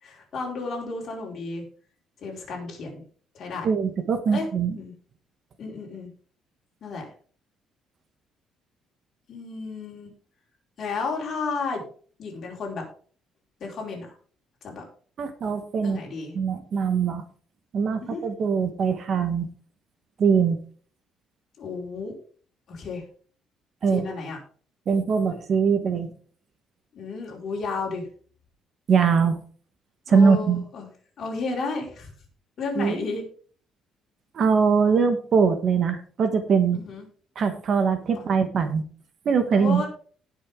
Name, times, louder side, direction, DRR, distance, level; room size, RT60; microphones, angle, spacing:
voice 1, 0.0-1.6 2.2-3.0 3.3-3.7 4.3-4.5 4.7-4.9 5.6-6.1 6.8-7.1 9.3-10.1 10.8-11.8 12.2-12.8 13.6-14.1 14.6-14.8 15.8-16.3 18.0-18.2 21.6-22.2 22.7-23.0 23.9-24.4 26.9-28.1 30.1-30.9 31.2-32.1 32.6-33.2 36.7-37.1 38.1-38.3 39.5-39.9, left 4 dB, 40° left, -1 dB, 5.0 m, -32 dB
voice 2, 3.6-4.8 15.2-16.0 16.3-17.2 17.7-19.5 20.2-20.6 23.8-24.1 24.9-26.1 28.9-29.4 30.1-30.6 32.8-33.0 34.3-36.8 37.3-38.8 39.2-39.8, right 6 dB, 40° right, 9 dB, 1.3 m, -22 dB
18.5 x 6.4 x 3.7 m, 0.43 s
cardioid pair, 170°, 0 cm